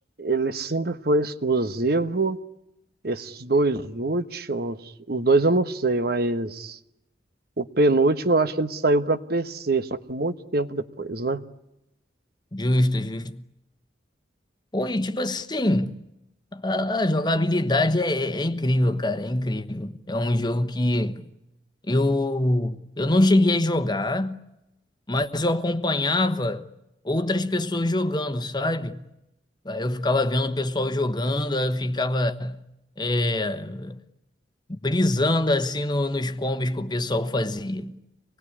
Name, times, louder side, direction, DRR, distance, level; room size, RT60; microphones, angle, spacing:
voice 1, 0.2-2.4 3.0-4.8 5.1-6.8 7.6-11.4, right 2 dB, 55° right, 1.2 m, -24 dB
voice 2, 12.5-13.4 14.7-16.0 16.5-21.2 21.9-24.4 25.1-26.6 27.0-29.1 29.6-32.6 33.0-34.0 34.7-38.0, left 1 dB, 25° left, 1.1 m, -24 dB
26.0 x 20.0 x 9.9 m
head